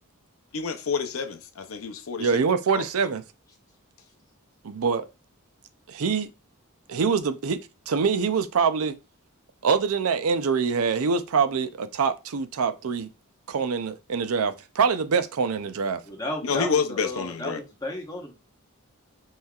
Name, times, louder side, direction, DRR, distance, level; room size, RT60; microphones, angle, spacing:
voice 1, 0.5-2.3 2.7-2.8 16.4-17.6, left 5 dB, 75° left, 0.6 m, -28 dB
voice 2, 2.2-3.2 4.6-5.1 5.9-6.3 6.9-7.6 7.9-8.9 9.6-13.1 13.5-16.0, right 5 dB, 85° right, 0.5 m, -24 dB
voice 3, 16.1-18.4, left 1 dB, 15° left, 1.0 m, -34 dB
5.5 x 3.2 x 2.3 m
head